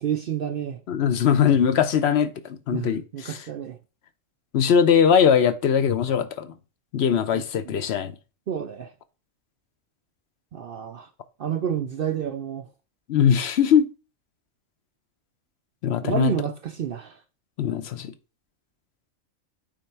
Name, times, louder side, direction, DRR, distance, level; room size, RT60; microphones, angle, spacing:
voice 1, 0.0-0.8 2.7-3.8 7.3-7.4 8.5-8.9 10.5-11.1 11.4-12.7 16.0-17.2, right 9 dB, 60° right, 0.6 m, -29 dB
voice 2, 0.9-3.5 4.5-6.5 6.9-8.1 13.1-13.9 15.8-16.3 17.6-18.1, left 7 dB, 60° left, 0.8 m, -21 dB
8.7 x 3.6 x 4.4 m
omnidirectional pair, 1.4 m